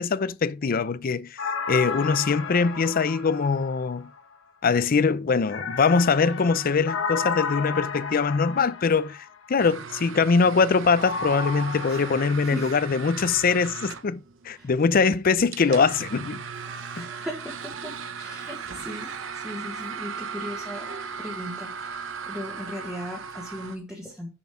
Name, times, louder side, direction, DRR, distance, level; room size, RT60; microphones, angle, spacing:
voice 1, 0.0-1.4 1.7-4.1 4.6-14.2 14.5-16.4 17.0-17.1, left 5 dB, 45° left, 0.5 m, -22 dB
sound 1, 1.4-4.2 5.5-9.3 11.0-12.3, left 5 dB, 85° left, 1.2 m, -32 dB
sound 2, 9.6-23.8, right 6 dB, 80° right, 0.9 m, -37 dB
voice 2, 12.4-12.7 14.5-14.7 15.6-15.8 16.7-24.3, equal, 5° right, 1.4 m, -38 dB
Speech, 16.5-20.0 21.0-21.1 21.5-21.6 21.8-21.9, right 4 dB, 60° right, 1.6 m, -49 dB
7.0 x 6.2 x 4.8 m
head